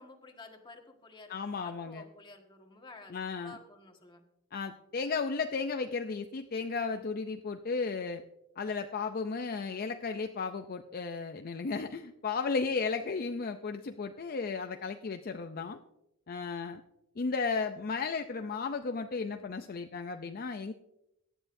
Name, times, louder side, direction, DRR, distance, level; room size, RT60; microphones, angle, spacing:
voice 1, 0.0-4.2, left 3 dB, 25° left, 3 dB, 1.6 m, -52 dB
voice 2, 1.3-2.0 3.1-3.6 4.5-8.2 8.6-15.8 16.3-16.8 17.2-20.7, left 4 dB, 45° left, 6 dB, 0.5 m, -34 dB
17.5 x 11.0 x 2.6 m, 0.86 s
head